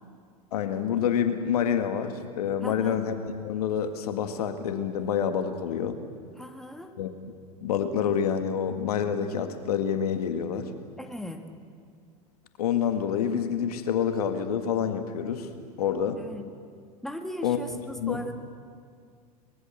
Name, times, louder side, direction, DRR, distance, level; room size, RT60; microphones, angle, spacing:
voice 1, 0.5-3.1 3.4-6.0 7.0-7.1 7.6-10.7 12.6-15.5 15.8-16.2 17.4-17.6 18.0-18.2, left 8 dB, 75° left, 8 dB, 1.9 m, -27 dB
voice 2, 2.6-3.0 6.4-6.9 11.0-11.5 16.2-16.5 17.0-18.3, left 1 dB, ahead, 5 dB, 2.1 m, -38 dB
23.5 x 21.5 x 7.4 m, 2.1 s
hypercardioid pair, 95°, 20 cm